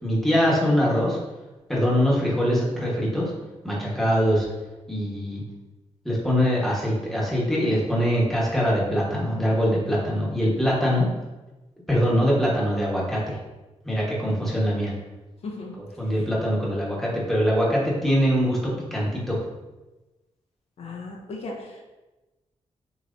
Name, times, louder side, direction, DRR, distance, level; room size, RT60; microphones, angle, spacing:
voice 1, 0.0-1.2 1.7-3.3 3.6-4.5 4.9-5.4 6.0-11.1 11.9-13.4 13.8-14.9 16.0-18.6 18.9-19.4, equal, ahead, -6 dB, 1.2 m, -23 dB
voice 2, 15.4-15.8 16.0-16.2 20.8-21.8, left 3 dB, 65° left, -1 dB, 0.8 m, -37 dB
6.5 x 3.1 x 2.6 m, 1.1 s
wide cardioid pair, 145°, 12 cm